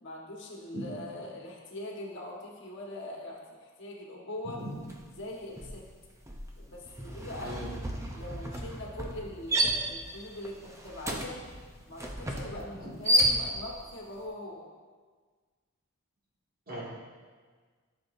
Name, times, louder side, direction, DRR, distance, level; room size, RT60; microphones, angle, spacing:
voice 1, 0.0-4.6 5.2-5.8 6.6-7.6 8.1-11.4 11.8-14.7, left 1 dB, 55° left, -2 dB, 1.5 m, -42 dB
voice 2, 0.7-0.8 4.6-4.7 7.4-7.7 12.8-12.9 16.7-16.8, equal, 40° right, -5 dB, 2.2 m, -38 dB
sound 1, 4.8-5.1 5.4-13.9, right 1 dB, 15° right, 0.6 m, -32 dB
13.5 x 6.9 x 2.7 m, 1.5 s
head